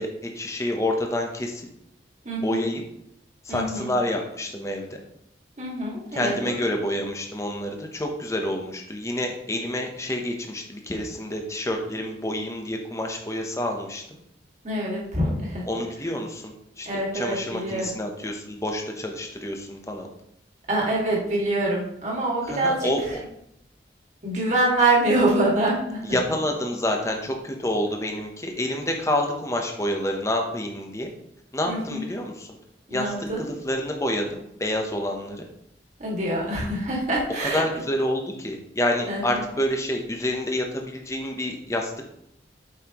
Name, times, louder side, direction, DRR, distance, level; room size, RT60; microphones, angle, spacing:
voice 1, 0.0-1.6 2.4-2.8 3.4-5.0 6.1-14.2 15.7-20.1 22.4-23.2 26.1-31.1 31.5-32.6 32.9-35.4 37.4-42.0, left 1 dB, 15° left, 2 dB, 0.8 m, -28 dB
voice 2, 2.2-2.6 3.5-3.9 5.6-6.5 14.6-15.6 16.8-17.9 20.7-22.9 24.2-26.2 31.7-32.1 32.9-33.4 36.0-37.6 39.1-39.4, right 2 dB, 40° right, -3 dB, 2.0 m, -25 dB
7.9 x 5.7 x 3.0 m, 0.76 s
head